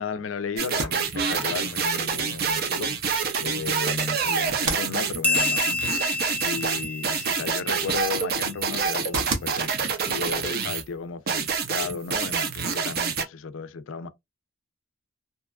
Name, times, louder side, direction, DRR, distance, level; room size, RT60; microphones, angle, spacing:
voice 1, 0.0-3.0 3.4-5.9 6.4-14.1, left 5 dB, 75° left, 0.4 m, -34 dB
sound 1, 0.6-10.8 11.3-13.2, right 6 dB, 50° right, 0.5 m, -27 dB
sound 2, 5.2-8.3, left 3 dB, 10° left, 0.5 m, -29 dB
sound 3, 7.8-12.3, right 3 dB, 75° right, 0.8 m, -39 dB
2.8 x 2.3 x 2.3 m
head